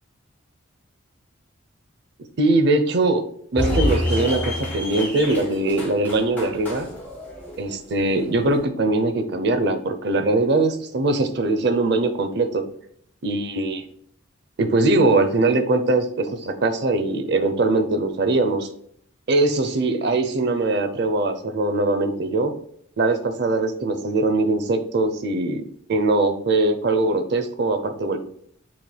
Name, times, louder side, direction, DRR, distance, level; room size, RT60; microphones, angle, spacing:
voice 1, 2.4-3.2 3.5-6.9 7.6-12.6 13.2-13.9 14.6-18.7 19.3-22.5 23.0-25.6 25.9-28.2, right 2 dB, 55° right, 8 dB, 0.5 m, -21 dB
sound 1, 3.6-8.6, left 1 dB, 10° left, 1.6 m, -28 dB
7.0 x 3.2 x 2.3 m, 0.65 s
head